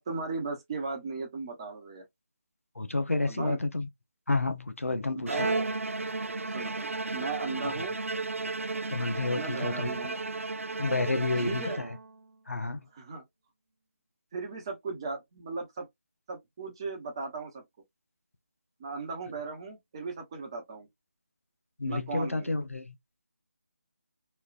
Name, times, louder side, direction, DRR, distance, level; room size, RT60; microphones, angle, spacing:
voice 1, 0.0-2.0 3.3-3.6 5.1-5.6 6.5-8.0 9.3-10.2 11.4-11.8 12.9-13.2 14.3-15.9 16.3-17.6 18.8-20.9 21.9-22.5, right 4 dB, 20° right, 0.8 m, -37 dB
voice 2, 2.8-3.9 4.3-5.5 7.6-7.7 8.9-10.2 10.8-12.0 12.5-12.9 21.8-22.9, left 3 dB, 75° left, 0.7 m, -30 dB
Bowed string instrument, 5.3-12.2, right 3 dB, 70° right, 0.3 m, -34 dB
3.2 x 2.4 x 2.4 m
figure-of-eight pair, 155°, 7 cm